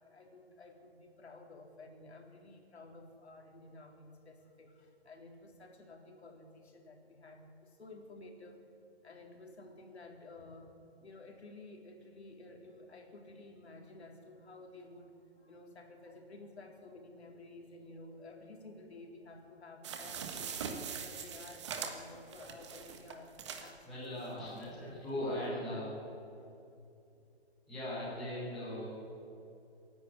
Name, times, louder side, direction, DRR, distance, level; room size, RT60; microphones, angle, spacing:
voice 1, 0.0-8.6 9.0-10.7 11.0-20.6 21.0-25.3 26.4-26.5, left 2 dB, 80° left, 2 dB, 4.0 m, -53 dB
sound 1, 19.8-23.7 24.2-24.3 24.6-24.7, right 6 dB, 25° right, 1.5 m, -42 dB
voice 2, 23.8-26.0 27.7-28.9, left 1 dB, ahead, -26 dB, 0.5 m, -39 dB
25.5 x 11.0 x 9.7 m, 2.6 s
hypercardioid pair, 170°, 32 cm